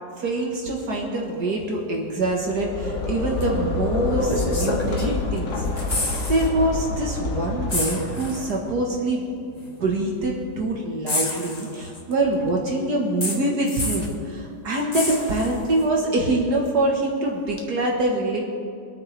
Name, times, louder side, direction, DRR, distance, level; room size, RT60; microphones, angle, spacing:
voice 1, 0.2-5.9 6.3-9.2 9.5-18.4, right 2 dB, 70° right, -1 dB, 2.0 m, -24 dB
sound 1, 2.3-8.4, left 3 dB, 45° left, 1.7 m, -27 dB
sound 2, 3.4-3.5 4.3-5.4 5.7-6.5 6.8-7.0 7.7-8.6 9.6-9.7 11.1-12.1 13.2-14.2 14.9-15.8 17.6-17.7, left 2 dB, 25° left, 1.5 m, -29 dB
24.5 x 9.2 x 3.4 m, 2.5 s
omnidirectional pair, 1.8 m